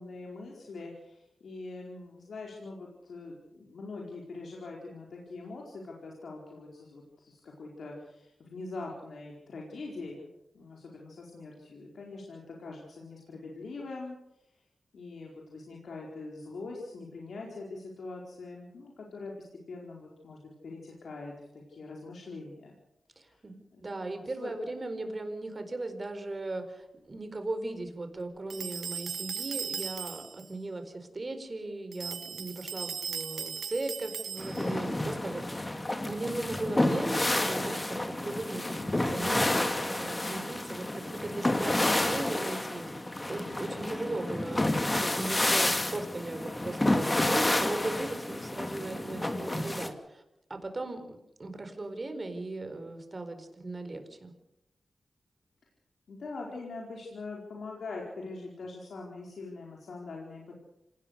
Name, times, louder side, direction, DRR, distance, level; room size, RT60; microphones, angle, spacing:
voice 1, 0.0-10.3 10.5-14.2 14.9-22.8 23.2-23.4 23.7-23.8 24.4-24.5 56.1-60.6, left 3 dB, 80° left, -1 dB, 4.5 m, -43 dB
voice 2, 23.2-50.2 50.5-54.3, right 2 dB, 40° right, 7 dB, 4.6 m, -38 dB
sound 1, 28.5-30.5 31.9-34.8, right 7 dB, 85° right, 0.8 m, -37 dB
sound 2, 34.4-49.9, left 1 dB, 25° left, 2.7 m, -30 dB
27.0 x 19.0 x 6.7 m, 0.85 s
cardioid pair, 65°, 0 cm